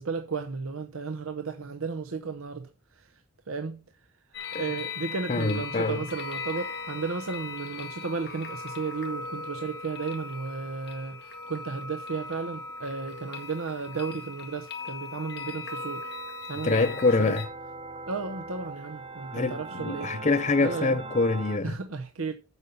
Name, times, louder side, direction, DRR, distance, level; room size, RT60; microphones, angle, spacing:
voice 1, 0.0-3.2 3.5-3.8 4.6-16.0 16.5-17.3 18.1-20.2 20.6-21.0 21.6-22.3, right 4 dB, 90° right, 0.8 m, -34 dB
sound 1, 4.3-17.5, left 3 dB, 55° left, 1.9 m, -39 dB
voice 2, 5.3-6.0 16.6-17.4 19.3-21.7, left 3 dB, 35° left, 0.6 m, -25 dB
sound 2, 16.6-21.6, right 3 dB, 30° right, 0.8 m, -40 dB
8.1 x 5.4 x 7.1 m
head